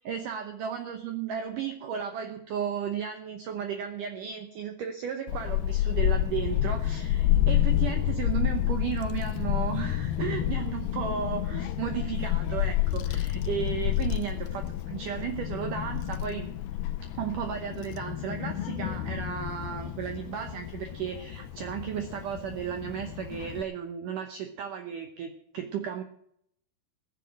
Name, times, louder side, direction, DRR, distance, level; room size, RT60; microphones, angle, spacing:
voice 1, 0.1-16.5 17.1-26.0, right 8 dB, 75° right, 6 dB, 1.9 m, -34 dB
Child speech kid speaking / Wind, 5.3-23.6, left 13 dB, 75° left, 2.3 m, -29 dB
15.5 x 8.0 x 7.7 m, 0.71 s
omnidirectional pair, 5.0 m